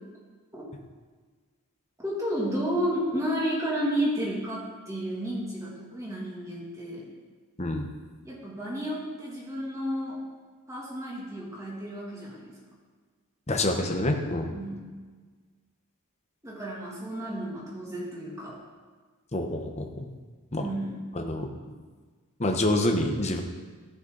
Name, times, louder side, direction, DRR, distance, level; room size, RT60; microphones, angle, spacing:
voice 1, 2.0-7.1 8.2-10.2 10.7-12.5 14.5-14.8 16.4-18.5 20.6-21.0, equal, 15° right, -5 dB, 2.6 m, -32 dB
voice 2, 7.6-7.9 13.5-14.5 19.3-20.1 20.5-20.6 21.1-21.5 22.4-23.4, left 1 dB, 30° left, 3 dB, 1.0 m, -27 dB
14.5 x 6.2 x 4.1 m, 1.5 s
head